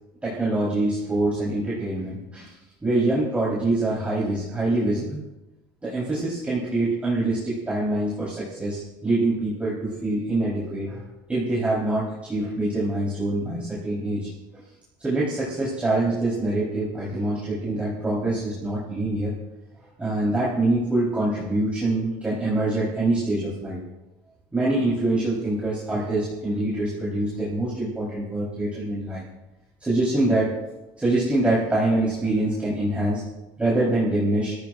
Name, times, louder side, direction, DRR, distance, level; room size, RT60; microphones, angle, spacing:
voice 1, 0.2-2.6 2.8-5.2 5.8-11.0 11.3-14.6 15.0-19.3 20.0-23.8 24.5-29.2 29.8-30.5 31.0-33.2 33.6-34.6, right 2 dB, 15° right, -7 dB, 4.3 m, -25 dB
25.0 x 15.0 x 2.6 m, 1.0 s
cardioid pair, 120°, 10 cm